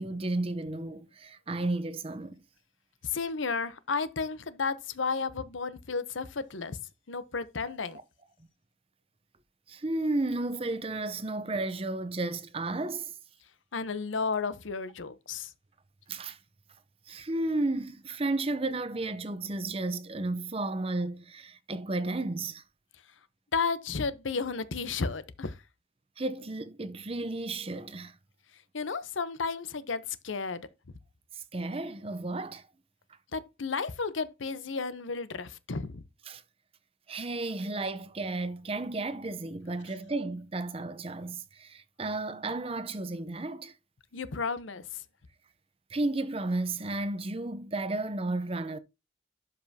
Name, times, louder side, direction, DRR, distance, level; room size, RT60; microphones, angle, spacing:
voice 1, 0.0-2.4 9.7-13.1 16.1-16.4 17.1-22.6 26.2-28.2 31.5-32.6 36.3-36.4 37.1-43.7 45.9-48.8, right 2 dB, 30° right, 0.7 m, -33 dB
voice 2, 3.0-6.8 7.1-8.0 13.7-15.5 23.5-25.6 28.7-30.7 33.3-36.0 44.1-45.0, left 4 dB, 90° left, 0.8 m, -33 dB
12.0 x 5.5 x 2.8 m
head